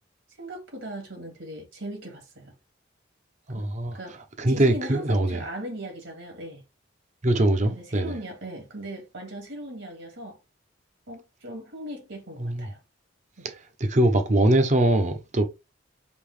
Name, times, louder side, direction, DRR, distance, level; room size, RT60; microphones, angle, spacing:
voice 1, 0.4-2.5 3.5-3.7 3.9-4.2 4.5-6.6 7.7-10.4 11.1-12.8 13.4-13.5, right 1 dB, 70° right, 2.1 m, -38 dB
voice 2, 3.5-4.0 4.4-5.4 7.2-8.1 12.4-12.7 13.8-15.4, right 1 dB, 40° right, 0.8 m, -22 dB
5.3 x 3.0 x 3.3 m
head